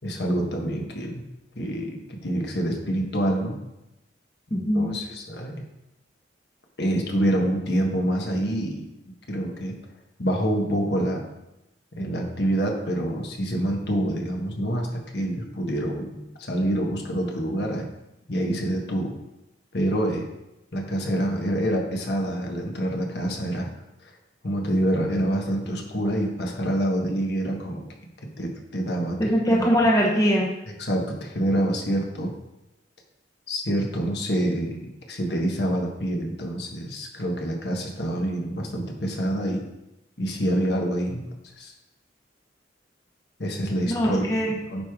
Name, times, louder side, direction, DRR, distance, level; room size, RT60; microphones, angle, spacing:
voice 1, 0.0-1.2 1.5-3.6 4.5-5.5 6.8-8.9 9.3-9.7 10.2-11.2 12.0-17.9 18.3-19.1 19.7-20.3 20.7-23.7 24.0-24.1 24.4-27.8 28.4-29.2 29.6-29.7 30.8-32.3 33.5-39.6 40.2-41.2 41.6-41.7 43.4-44.8, right 1 dB, 60° left, 1 dB, 1.3 m, -26 dB
voice 2, 4.5-5.0 29.2-30.5 43.9-44.5, equal, 20° left, -2 dB, 0.9 m, -21 dB
9.7 x 4.8 x 3.7 m, 0.93 s
head